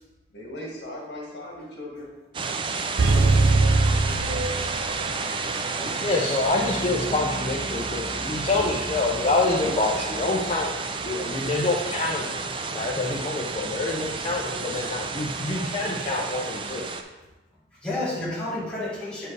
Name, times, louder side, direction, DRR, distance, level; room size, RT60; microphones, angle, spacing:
voice 1, 0.3-2.1 3.2-3.6, left 1 dB, 75° left, -3 dB, 1.6 m, -38 dB
sound 1, 2.3-17.0, right 4 dB, 30° right, 0.3 m, -31 dB
sound 2, 3.0-5.2 5.5-5.6, right 2 dB, 80° right, 0.6 m, -21 dB
voice 2, 6.0-10.7 11.0-12.5 12.7-16.9, left 2 dB, 30° left, -3 dB, 0.6 m, -26 dB
Bass guitar, 6.5-12.9, left 1 dB, 55° left, 1.7 m, -41 dB
voice 3, 17.7-19.3, left 1 dB, 5° left, -8 dB, 1.6 m, -32 dB
8.3 x 4.5 x 3.3 m, 1.1 s
head